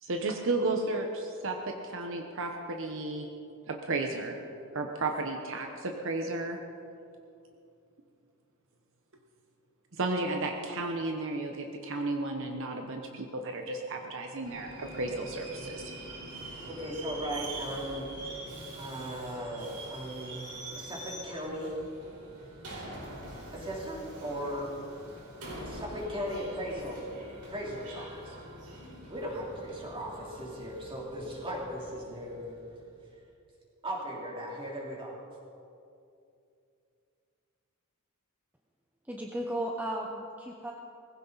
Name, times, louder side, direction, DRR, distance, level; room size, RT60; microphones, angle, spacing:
voice 1, 0.0-3.3 3.7-4.4 4.7-6.6 10.0-15.8, right 2 dB, 60° right, 3 dB, 1.1 m, -33 dB
Subway metro underground, 14.4-32.9, right 1 dB, 90° right, 4.4 m, -45 dB
voice 2, 16.7-20.5 20.8-21.8 23.5-24.7 25.6-27.1 27.5-28.4 29.1-32.6 33.8-35.1, equal, 25° right, -4 dB, 3.4 m, -37 dB
voice 3, 39.1-40.7, right 1 dB, 10° right, 0 dB, 0.8 m, -35 dB
19.5 x 16.0 x 4.1 m, 2.6 s
head